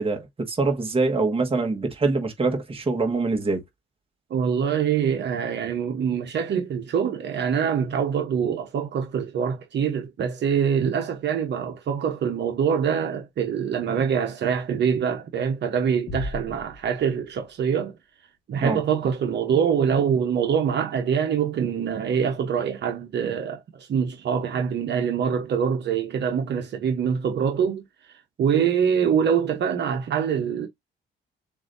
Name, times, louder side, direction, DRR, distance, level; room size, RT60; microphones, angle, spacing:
voice 1, 0.0-3.6 18.6-18.8, right 3 dB, 30° right, 1.6 m, -24 dB
voice 2, 4.3-17.9 18.5-27.8 28.4-30.7, right 7 dB, 60° right, 1.1 m, -24 dB
sound 1, 16.1-17.8, left 2 dB, 60° left, 1.6 m, -37 dB
7.1 x 2.7 x 2.7 m
cardioid pair, 90°, 20 cm